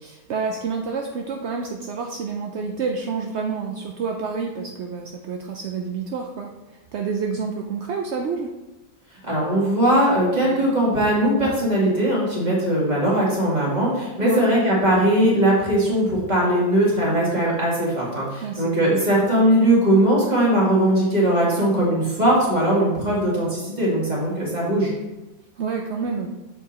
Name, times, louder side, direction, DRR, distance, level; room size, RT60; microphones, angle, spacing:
voice 1, 0.0-8.5 14.2-14.5 18.4-18.9 25.6-26.3, right 5 dB, 70° right, 2 dB, 0.6 m, -29 dB
voice 2, 9.2-24.9, right 1 dB, 25° right, -6 dB, 2.3 m, -20 dB
7.1 x 4.7 x 4.2 m, 1.1 s
omnidirectional pair, 1.8 m